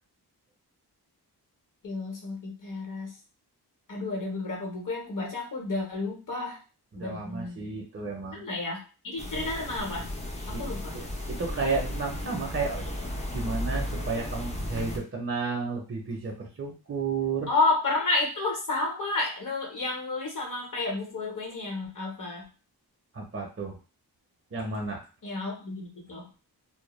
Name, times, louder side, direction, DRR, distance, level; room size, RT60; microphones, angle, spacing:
voice 1, 1.8-3.1 3.9-6.6 7.0-7.7 8.3-10.1 10.5-10.9 17.5-22.4 25.2-26.3, left 3 dB, 50° left, 0 dB, 0.9 m, -31 dB
voice 2, 6.9-8.4 10.5-10.6 10.9-12.9 13.3-17.5 23.1-23.8 24.5-25.1, right 4 dB, 35° right, 0 dB, 0.5 m, -32 dB
sound 1, 9.2-15.0, left 1 dB, 15° left, 0.4 m, -34 dB
2.2 x 2.0 x 3.0 m, 0.33 s
wide cardioid pair, 90°, 41 cm